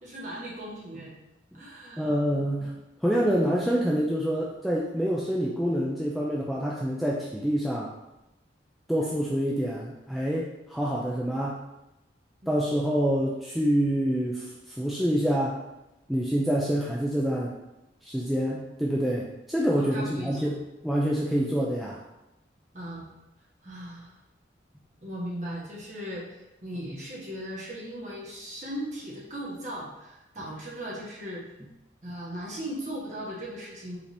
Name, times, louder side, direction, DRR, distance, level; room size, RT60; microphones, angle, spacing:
voice 1, 0.0-1.1 1.5-2.1 12.4-12.5 19.8-20.6 22.7-23.1 23.6-24.1 25.0-31.4 32.0-34.0, equal, 40° right, -5 dB, 1.1 m, -38 dB
voice 2, 2.0-2.7 3.0-7.9 8.9-11.6 12.5-15.6 16.1-17.5 18.0-20.6 20.8-22.0, equal, ahead, -5 dB, 0.3 m, -26 dB
4.9 x 2.8 x 3.3 m, 0.95 s
head